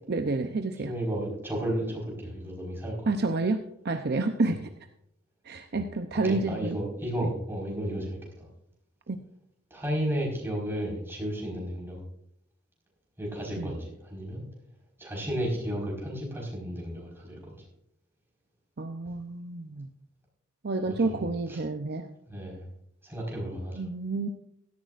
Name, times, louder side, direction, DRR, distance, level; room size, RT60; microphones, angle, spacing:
voice 1, 0.1-0.9 3.1-4.6 5.5-6.8 9.1-9.2 13.6-13.7 18.8-19.9 20.6-22.1 23.8-24.3, right 3 dB, 50° right, 6 dB, 0.7 m, -29 dB
voice 2, 0.8-3.1 4.5-4.6 6.2-8.5 9.7-12.0 13.2-14.4 15.0-17.6 20.8-21.6 22.3-22.7 23.0-23.8, equal, 10° right, -2 dB, 4.8 m, -33 dB
16.5 x 13.0 x 2.5 m, 0.74 s
head